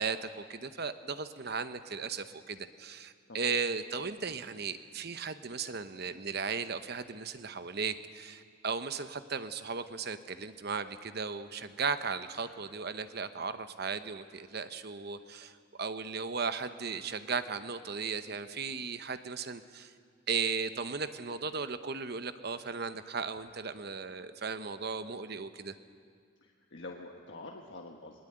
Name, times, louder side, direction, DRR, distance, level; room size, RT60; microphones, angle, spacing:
voice 1, 0.0-19.9 20.3-25.8, right 5 dB, 50° right, 11 dB, 0.9 m, -36 dB
voice 2, 26.4-28.2, left 2 dB, 60° left, 1 dB, 1.3 m, -46 dB
21.0 x 19.5 x 8.9 m, 2.1 s
head